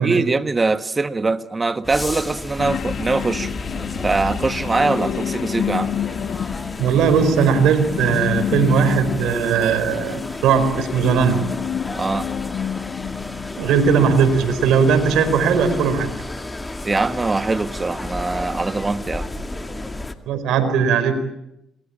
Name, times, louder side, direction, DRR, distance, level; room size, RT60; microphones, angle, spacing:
voice 1, 0.0-3.5 4.0-5.9 11.9-12.3 16.8-19.3, right 3 dB, 25° right, 1.5 m, -22 dB
sound 1, 1.8-20.1, left 2 dB, 15° left, 2.2 m, -32 dB
sound 2, 2.6-14.4 14.7-14.8, left 9 dB, 65° left, 1.0 m, -29 dB
voice 2, 6.8-11.4 13.6-16.1 20.3-21.2, right 6 dB, 85° right, 4.6 m, -18 dB
27.0 x 22.0 x 8.7 m
cardioid pair, 90°, 0 cm